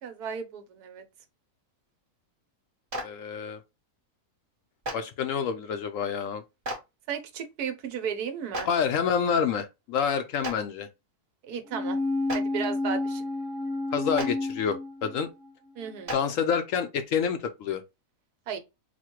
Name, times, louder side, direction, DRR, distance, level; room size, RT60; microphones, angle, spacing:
voice 1, 0.0-1.0 7.1-8.7 11.4-12.0 12.3-13.3 15.8-16.1 18.5-18.6, right 7 dB, 80° right, 1.3 m, -34 dB
Clapping, 2.9-3.0 4.8-4.9 6.6-6.8 8.5-8.6 10.4-10.5 12.2-12.4 14.1-14.3 16.1-16.2, right 1 dB, 35° right, 1.3 m, -31 dB
voice 2, 3.0-3.6 4.9-6.4 8.6-10.9 13.9-15.3 16.1-17.8, left 7 dB, 70° left, 0.9 m, -28 dB
sound 1, 11.7-15.5 15.8-15.9, left 2 dB, 5° right, 0.8 m, -30 dB
4.1 x 2.2 x 4.4 m
omnidirectional pair, 1.6 m